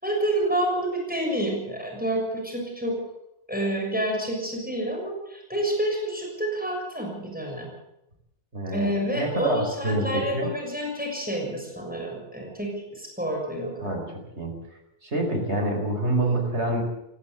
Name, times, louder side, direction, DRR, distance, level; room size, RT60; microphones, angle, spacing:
voice 1, 0.0-3.0 3.5-7.7 8.7-14.0, right 1 dB, 10° right, 0 dB, 6.7 m, -28 dB
voice 2, 8.5-10.5 13.8-14.5 15.0-16.8, right 1 dB, 90° right, 2 dB, 5.3 m, -27 dB
18.5 x 17.5 x 8.1 m, 0.86 s
omnidirectional pair, 1.1 m